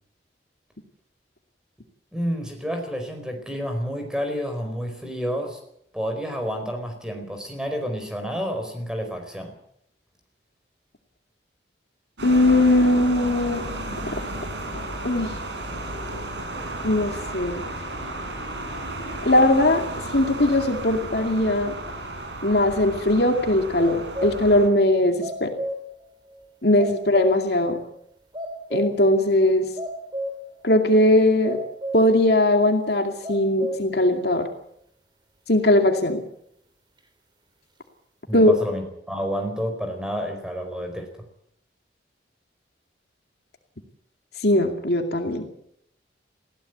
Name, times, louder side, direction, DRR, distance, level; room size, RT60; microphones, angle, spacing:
voice 1, 2.1-5.6 5.9-9.5 38.3-41.1, equal, 5° right, 4 dB, 4.5 m, -29 dB
voice 2, 12.2-13.7 15.0-15.4 16.8-17.6 19.2-19.8 20.1-21.7 22.4-25.5 26.6-27.8 28.7-29.7 30.6-31.6 31.9-34.5 35.5-36.2 38.3-38.6 44.4-45.5, left 1 dB, 60° left, 4 dB, 2.3 m, -19 dB
sound 1, 12.2-24.7, right 1 dB, 75° right, 5.0 m, -33 dB
sound 2, 23.8-24.6 24.9-26.0 26.3-26.4 26.8-27.6 27.9-28.0 28.3-29.2 29.5-30.6 30.9-31.0 31.4-32.2 32.6-32.7 33.2-34.0, equal, 25° right, 2.7 m, -32 dB
20.5 x 16.0 x 8.0 m, 0.73 s
head